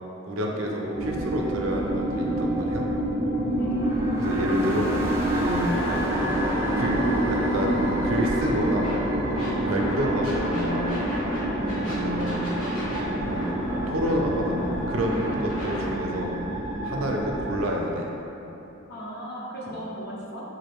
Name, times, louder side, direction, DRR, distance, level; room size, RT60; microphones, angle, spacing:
voice 1, 0.2-2.9 4.2-4.9 5.3-5.8 6.8-7.0 7.3-8.9 9.6-11.0 11.6-12.5 13.2-13.6 13.9-14.6 14.9-16.3 16.8-18.1 19.7-19.8, equal, 80° right, 0 dB, 0.5 m, -28 dB
sound 1, 0.9-17.6, right 1 dB, 15° right, 0.4 m, -27 dB
voice 2, 3.6-4.2 10.3-10.4 11.4-11.7 18.9-20.4, equal, 50° left, -5 dB, 0.7 m, -36 dB
Scratching (performance technique), 8.1-8.5 8.8-11.4 11.7-15.9, equal, 80° left, 1.2 m, -35 dB
3.7 x 2.5 x 3.4 m, 3.0 s
head